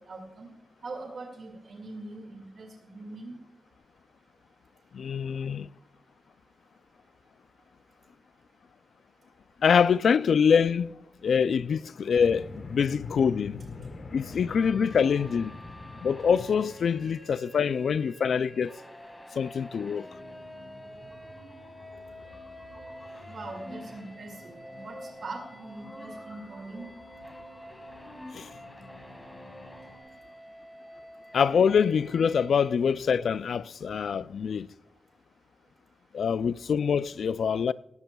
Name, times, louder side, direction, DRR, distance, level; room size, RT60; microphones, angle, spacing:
voice 1, 0.1-0.5 0.8-3.4 23.3-26.9, right 2 dB, 65° right, 2.1 m, -42 dB
voice 2, 4.9-5.7 9.6-10.9 11.2-13.7 14.1-15.6 16.0-18.8 19.4-20.1 28.3-28.5 31.3-34.7 36.1-37.7, left 6 dB, 90° left, 0.3 m, -25 dB
sound 1, 12.1-17.2, left 2 dB, 65° left, 1.9 m, -44 dB
sound 2, 14.3-32.7, equal, 10° left, 2.2 m, -48 dB
sound 3, 20.0-30.0, left 1 dB, 25° left, 5.2 m, -49 dB
17.5 x 15.0 x 2.3 m
wide cardioid pair, 140°, 0 cm